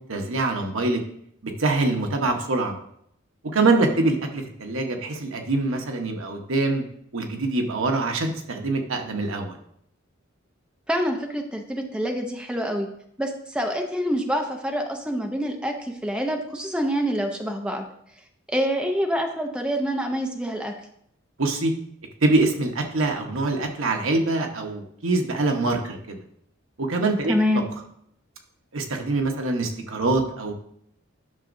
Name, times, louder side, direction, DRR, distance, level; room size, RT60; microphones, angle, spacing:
voice 1, 0.1-1.0 1.4-2.8 3.5-6.8 7.1-9.6 21.4-21.7 22.2-26.2 26.8-27.3 28.7-30.5, right 2 dB, 80° right, 3 dB, 1.0 m, -24 dB
voice 2, 10.9-12.9 13.2-17.8 18.5-20.7 27.3-27.6, equal, 5° right, 3 dB, 0.6 m, -26 dB
11.0 x 6.1 x 2.6 m, 0.72 s
head